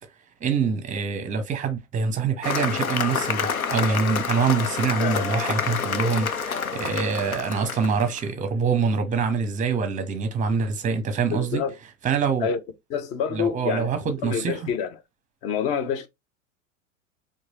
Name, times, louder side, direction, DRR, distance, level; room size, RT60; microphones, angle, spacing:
voice 1, 0.4-11.6 12.0-12.5 13.3-14.7, right 5 dB, 20° right, 0.9 m, -25 dB
Cheering / Applause, 2.4-8.2, left 6 dB, 90° left, 0.6 m, -28 dB
voice 2, 11.3-11.7 12.4-12.6 12.9-13.9 14.2-14.9 15.4-16.1, left 7 dB, 20° left, 0.4 m, -27 dB
4.5 x 2.6 x 2.9 m
figure-of-eight pair, 90°, 41 cm